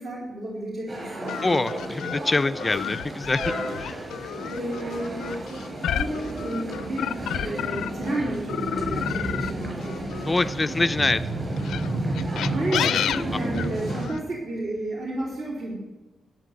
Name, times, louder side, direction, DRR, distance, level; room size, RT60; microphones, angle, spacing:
voice 1, 0.0-1.7 4.4-5.4 5.9-10.1 12.4-15.8, right 1 dB, 55° right, -4 dB, 3.8 m, -32 dB
sound 1, 0.9-14.1, right 2 dB, 35° right, 6.0 m, -32 dB
sound 2, 1.3-8.1 8.5-10.9 11.6-14.2, left 10 dB, 85° left, 0.5 m, -31 dB
voice 2, 1.4-3.4 3.8-4.0 10.3-11.2, left 3 dB, 20° left, 12 dB, 0.5 m, -24 dB
12.0 x 8.3 x 9.4 m, 1.2 s
cardioid pair, 120°, 0 cm